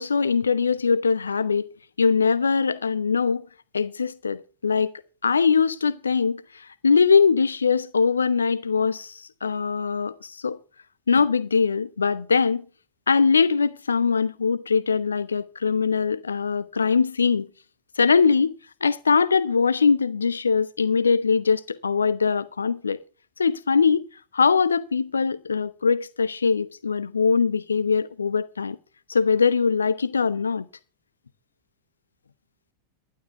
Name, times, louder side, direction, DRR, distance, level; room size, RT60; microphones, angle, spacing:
voice 1, 0.0-1.7 2.0-3.5 3.7-4.9 5.2-10.6 11.1-12.6 13.1-17.5 18.0-18.5 18.8-23.0 23.4-24.1 24.3-28.8 29.1-30.7, left 5 dB, 75° left, 0.9 m, -22 dB
12.0 x 11.5 x 4.6 m
figure-of-eight pair, 90°, 0 cm